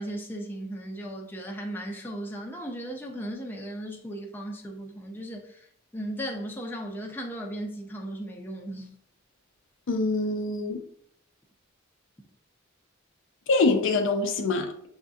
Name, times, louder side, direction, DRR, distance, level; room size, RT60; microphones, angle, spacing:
voice 1, 0.0-5.7 5.9-8.9, right 1 dB, 10° left, 0 dB, 0.5 m, -36 dB
voice 2, 9.9-10.8 13.5-14.9, left 3 dB, 65° left, 5 dB, 0.5 m, -25 dB
6.4 x 2.6 x 2.3 m, 0.64 s
head